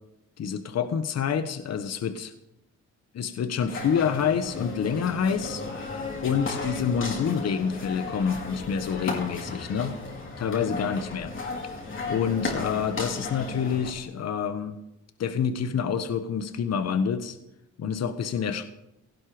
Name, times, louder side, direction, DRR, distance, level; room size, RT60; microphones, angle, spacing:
voice 1, 0.4-2.3 3.1-10.0 10.4-11.3 12.1-14.7 15.2-17.4 17.8-18.6, left 7 dB, 60° left, 9 dB, 1.4 m, -27 dB
sound 1, 3.7-13.9, left 3 dB, 40° left, 4.8 m, -35 dB
18.0 x 15.5 x 5.1 m, 0.88 s
cardioid pair, 90°, 30 cm